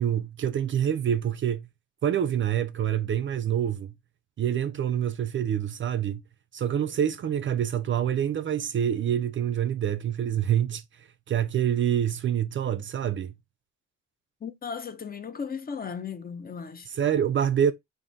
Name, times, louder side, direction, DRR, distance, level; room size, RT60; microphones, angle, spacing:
voice 1, 0.0-1.7 2.0-3.9 4.4-6.2 6.5-10.8 11.3-13.3 16.9-17.7, right 9 dB, 40° right, 0.4 m, -26 dB
voice 2, 14.4-16.9, left 6 dB, 30° left, 0.6 m, -36 dB
3.8 x 2.5 x 3.7 m
cardioid pair, 90°, 30 cm